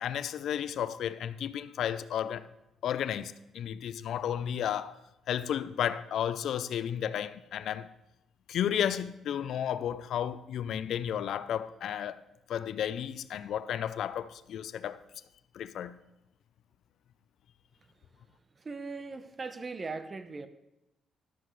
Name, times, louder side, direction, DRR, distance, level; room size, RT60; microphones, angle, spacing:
voice 1, 0.0-2.5 2.8-5.0 5.3-7.9 8.5-12.2 12.5-15.0 15.5-16.0, left 9 dB, 70° left, 0.4 m, -33 dB
voice 2, 18.6-20.5, right 4 dB, 30° right, 0.7 m, -39 dB
12.0 x 7.8 x 3.1 m
cardioid pair, 90°, 0 cm